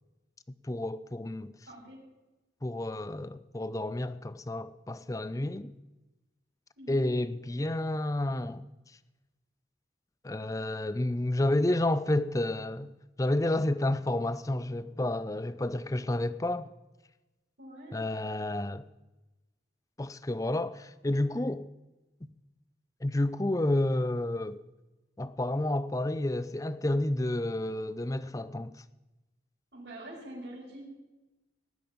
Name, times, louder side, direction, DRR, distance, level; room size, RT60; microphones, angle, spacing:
voice 1, 0.6-1.5 2.6-5.7 6.9-8.6 10.2-16.7 17.9-18.8 20.0-21.7 23.0-24.6 25.2-28.7, left 1 dB, 20° left, 0.5 m, -30 dB
voice 2, 1.7-2.0 6.8-7.1 17.6-18.0 29.7-31.0, right 1 dB, 75° right, 5.0 m, -45 dB
18.5 x 10.0 x 5.4 m
head